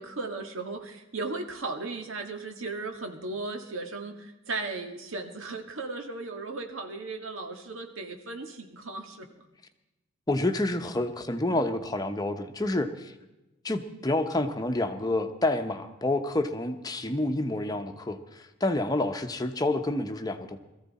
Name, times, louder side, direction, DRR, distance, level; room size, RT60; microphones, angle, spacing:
voice 1, 0.0-9.3, right 3 dB, 85° right, 5 dB, 1.8 m, -36 dB
voice 2, 10.3-13.1 13.6-20.6, left 2 dB, 20° left, 6 dB, 0.9 m, -28 dB
21.0 x 14.0 x 4.2 m, 1.0 s
head